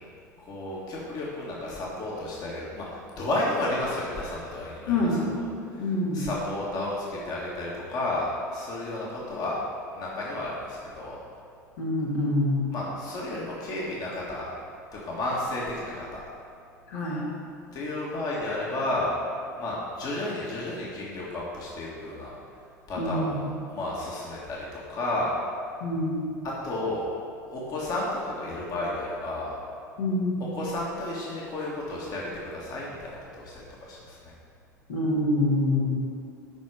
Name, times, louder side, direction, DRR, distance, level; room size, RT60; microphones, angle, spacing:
voice 1, 0.5-2.9 3.2-5.4 5.8-5.9 6.1-9.6 9.9-11.2 12.7-14.5 14.9-16.2 17.7-19.1 19.6-22.3 22.9-25.3 26.4-27.1 27.5-29.6 30.6-34.2, left 2 dB, 45° left, -5 dB, 1.8 m, -32 dB
voice 2, 4.9-5.2 5.8-6.2 11.8-12.6 16.9-17.3 23.0-23.4 25.8-26.3 30.0-30.5 34.9-36.0, left 1 dB, 70° left, -5 dB, 2.2 m, -26 dB
11.5 x 4.3 x 5.0 m, 2.4 s
hypercardioid pair, 75°, 9 cm